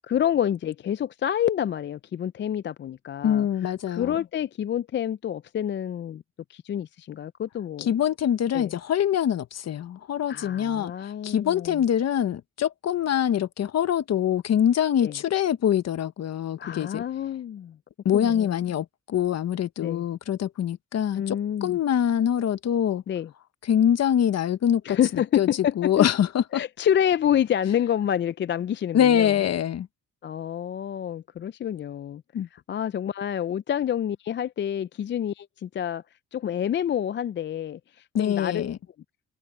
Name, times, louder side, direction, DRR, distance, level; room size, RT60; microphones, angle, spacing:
voice 1, 0.0-6.2 6.5-7.9 8.5-8.7 10.3-11.8 15.0-15.2 16.6-17.8 18.1-18.6 19.8-20.0 21.1-21.8 23.1-23.3 24.8-26.1 26.5-29.4 30.2-32.2 32.5-36.0 36.3-38.7, left 10 dB, 40° left, 0.4 m, -28 dB
voice 2, 3.2-4.1 7.9-17.0 18.0-23.0 23.7-25.0 25.4-25.5 25.8-26.6 28.9-29.9 32.3-32.5 38.1-38.8, left 9 dB, 60° left, 1.2 m, -24 dB
cardioid pair, 90°, 30 cm